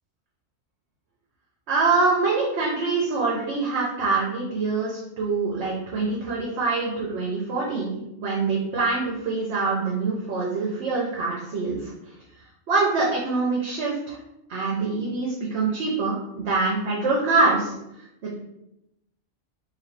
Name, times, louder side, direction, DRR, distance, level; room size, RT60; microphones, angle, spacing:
voice 1, 1.7-11.9 12.7-14.2 14.5-17.7 18.2-18.4, right 3 dB, 65° right, -3 dB, 1.0 m, -25 dB
3.1 x 2.6 x 4.1 m, 0.85 s
omnidirectional pair, 1.2 m